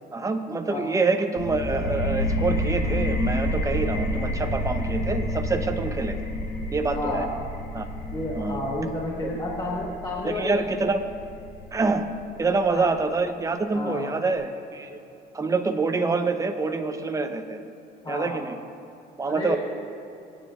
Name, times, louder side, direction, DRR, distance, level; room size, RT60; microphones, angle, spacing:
voice 1, 0.1-6.2 6.7-7.2 7.7-7.9 8.3-8.6 9.2-9.3 10.2-11.0 11.7-12.1 12.4-15.0 15.3-17.6 18.1-18.5 19.2-19.6, right 3 dB, 20° right, 7 dB, 0.8 m, -26 dB
sound 1, 1.4-12.8, left 1 dB, 75° left, 1.4 m, -29 dB
voice 2, 6.9-7.3 8.1-10.8 12.7-12.9 13.7-14.1 18.0-18.4 19.3-19.6, left 2 dB, 25° left, -3 dB, 1.4 m, -31 dB
23.5 x 9.1 x 2.5 m, 2.7 s
cardioid pair, 110°, 17 cm